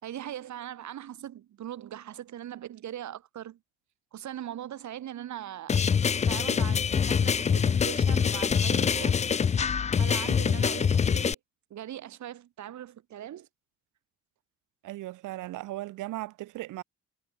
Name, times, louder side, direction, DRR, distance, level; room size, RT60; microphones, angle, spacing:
voice 1, 0.0-3.6 4.1-5.8 6.3-9.6 9.9-11.4 11.7-13.5, right 11 dB, 70° right, 3.0 m, -40 dB
sound 1, 5.7-11.3, left 6 dB, 25° left, 0.4 m, -25 dB
voice 2, 14.8-16.8, right 17 dB, 85° right, 1.1 m, -37 dB
cardioid pair, 90°, 30 cm